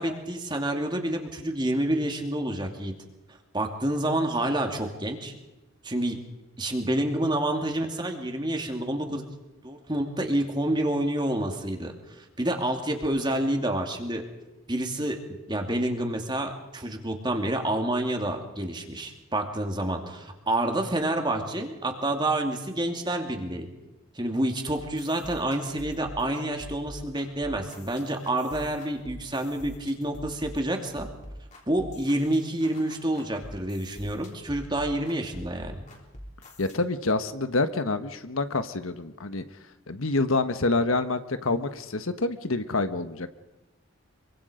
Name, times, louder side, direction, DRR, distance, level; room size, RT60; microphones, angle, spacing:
voice 1, 0.0-2.9 3.5-5.3 5.8-6.2 6.6-9.3 9.6-14.2 14.7-15.2 15.5-23.7 24.1-31.1 31.7-35.8, right 1 dB, 20° right, 4 dB, 2.7 m, -28 dB
sound 1, 24.8-36.8, equal, 35° left, 3.8 m, -45 dB
voice 2, 36.6-39.4 39.9-43.3, left 3 dB, 80° left, 10 dB, 1.3 m, -27 dB
25.5 x 24.0 x 5.1 m, 1.1 s
head